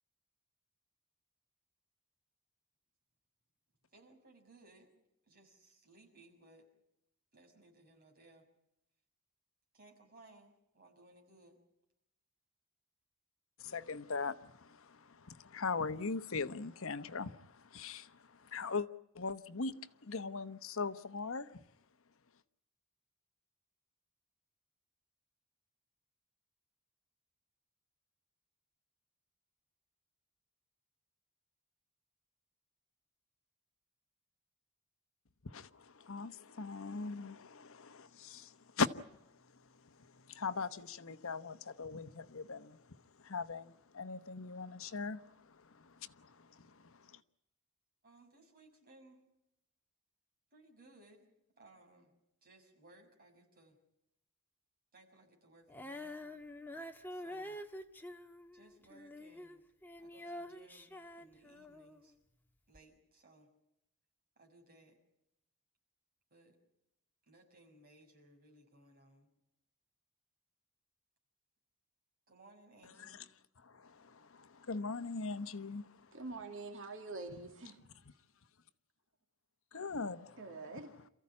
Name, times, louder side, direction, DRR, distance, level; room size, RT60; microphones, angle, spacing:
voice 1, 3.9-4.9 5.3-6.7 7.3-8.5 9.7-11.6 48.0-49.2 50.5-51.3 51.6-52.1 52.4-53.8 54.9-56.3 57.1-57.6 58.5-59.6 60.0-60.9 61.2-62.1 62.7-63.5 64.4-65.0 66.3-66.6 67.3-69.3 72.3-73.2, right 2 dB, 45° right, 6.4 m, -62 dB
voice 2, 13.6-18.1 18.4-18.9 19.1-19.8 20.0-21.5 35.4-38.9 40.3-42.8 43.2-45.2 45.8-46.7 73.0-73.1 73.6-75.9 79.7-80.4, left 4 dB, 65° left, 1.0 m, -40 dB
Female singing, 55.7-62.1 62.7-62.8, left 1 dB, 10° left, 1.4 m, -47 dB
voice 3, 76.1-77.8 80.4-80.9, right 3 dB, 60° right, 2.3 m, -45 dB
28.0 x 15.0 x 9.7 m
head